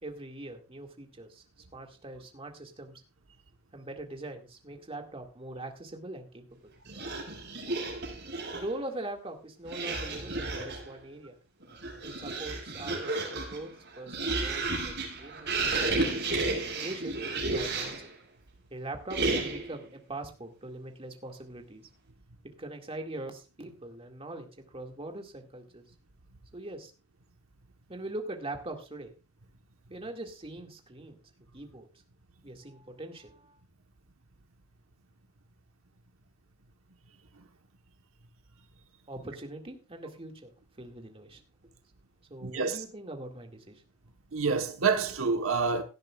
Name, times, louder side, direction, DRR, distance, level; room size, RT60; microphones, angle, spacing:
voice 1, 0.0-1.4 1.7-3.0 3.7-6.7 8.5-11.4 12.0-18.1 18.7-21.9 22.4-24.5 24.7-25.8 26.5-26.9 27.9-29.1 29.9-31.2 31.5-31.9 32.4-33.6 39.1-40.5 40.8-41.4 42.3-43.8, right 2 dB, 25° right, 2.1 m, -42 dB
sound 1, 6.9-8.8 9.6-10.9 11.6-18.1 19.1-19.8, right 3 dB, 55° right, 6.7 m, -32 dB
voice 2, 42.4-42.8 44.3-45.8, right 4 dB, 70° right, 1.2 m, -27 dB
17.5 x 12.0 x 2.4 m
head